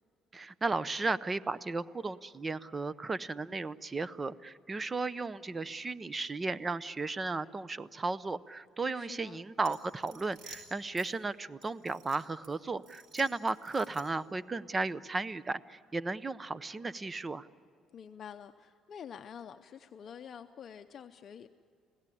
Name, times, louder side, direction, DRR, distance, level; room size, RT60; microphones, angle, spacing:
voice 1, 0.3-17.5, right 3 dB, 20° right, 17 dB, 0.6 m, -35 dB
voice 2, 9.0-9.4 17.9-21.5, left 8 dB, 50° left, 7 dB, 0.6 m, -48 dB
sound 1, 9.6-11.1 11.6-12.5 12.8-14.3, right 4 dB, 70° right, 4.8 m, -53 dB
27.5 x 17.0 x 9.9 m, 2.4 s
cardioid pair, 120°, 0 cm